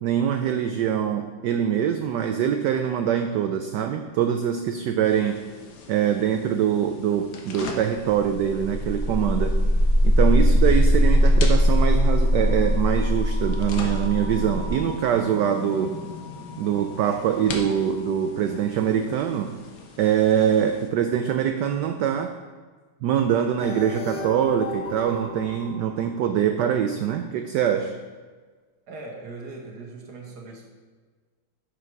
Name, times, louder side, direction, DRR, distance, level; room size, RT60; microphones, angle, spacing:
voice 1, 0.0-5.4 5.9-9.6 10.0-15.9 16.6-19.5 20.0-22.3 23.0-27.9, right 9 dB, 75° right, 7 dB, 1.0 m, -23 dB
sound 1, 5.0-20.9, left 4 dB, 60° left, 1.4 m, -41 dB
sound 2, 8.2-18.1, equal, 20° right, 1.7 m, -22 dB
sound 3, 23.6-26.6, left 1 dB, 75° left, 3.3 m, -36 dB
voice 2, 28.9-30.7, right 3 dB, 55° right, 0 dB, 1.7 m, -39 dB
11.0 x 5.2 x 4.6 m, 1.5 s
omnidirectional pair, 2.3 m